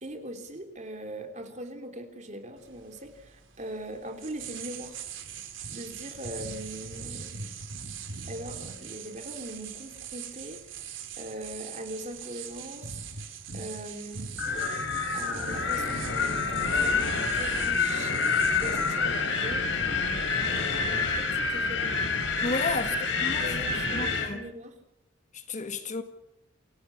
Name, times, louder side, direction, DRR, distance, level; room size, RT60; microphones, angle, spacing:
voice 1, 0.0-5.0 5.7-7.4 8.3-13.2 13.5-14.4 15.1-19.7 20.5-21.9 22.9-23.0 23.4-24.8, right 1 dB, 40° right, 3.4 m, -41 dB
sound 1, 2.6-21.0, right 6 dB, 85° right, 3.8 m, -42 dB
Wind, 14.4-24.3, left 4 dB, 75° left, 4.1 m, -27 dB
voice 2, 22.4-23.0 23.2-24.4 25.3-26.0, left 3 dB, 40° left, 1.9 m, -33 dB
28.5 x 16.5 x 7.3 m
head